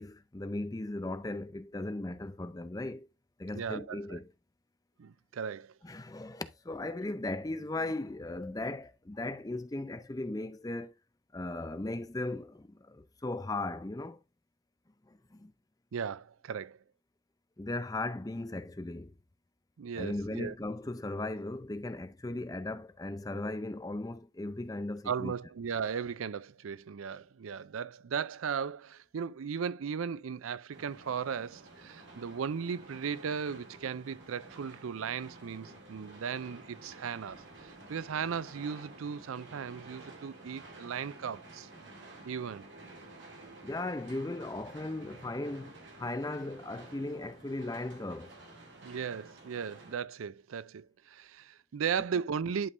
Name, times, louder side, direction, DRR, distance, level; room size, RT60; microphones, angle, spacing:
voice 1, 0.0-3.1 3.4-4.3 5.8-10.9 11.3-14.2 15.1-15.5 17.6-19.1 20.0-25.3 43.6-48.3, left 2 dB, 15° left, 0.5 m, -37 dB
voice 2, 3.5-4.2 5.0-5.7 15.9-16.8 19.8-20.5 25.1-41.7 42.2-42.7 48.8-52.7, right 6 dB, 85° right, 0.4 m, -36 dB
sound 1, 30.7-49.9, right 2 dB, 60° right, 2.6 m, -51 dB
11.0 x 5.4 x 2.6 m
head